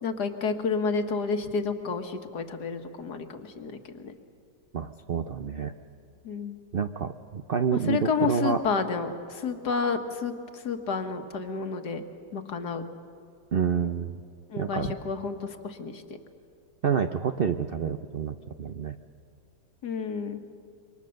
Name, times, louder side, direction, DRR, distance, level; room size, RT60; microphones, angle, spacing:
voice 1, 0.0-4.1 6.2-6.6 7.7-12.0 12.3-12.8 14.5-16.0 19.8-20.4, left 5 dB, 60° left, 7 dB, 1.9 m, -30 dB
voice 2, 4.7-5.7 6.7-8.6 13.5-14.2 14.6-14.9 16.8-19.0, right 6 dB, 90° right, 8 dB, 0.5 m, -28 dB
27.5 x 24.5 x 6.5 m, 2.4 s
omnidirectional pair, 2.0 m